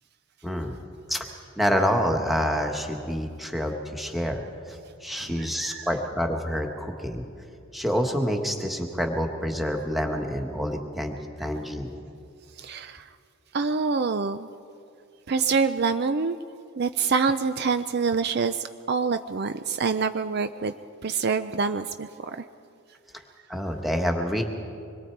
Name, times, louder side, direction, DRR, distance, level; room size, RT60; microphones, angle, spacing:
voice 1, 0.4-0.7 1.1-1.3 1.6-4.4 4.7-7.2 7.7-11.9 23.5-24.4, equal, ahead, 2 dB, 1.5 m, -27 dB
voice 2, 5.1-5.9 12.6-13.1 13.5-14.5 15.3-16.4 16.8-20.7 21.0-22.4, right 5 dB, 45° right, 10 dB, 0.5 m, -26 dB
25.5 x 21.5 x 4.7 m, 2.5 s
head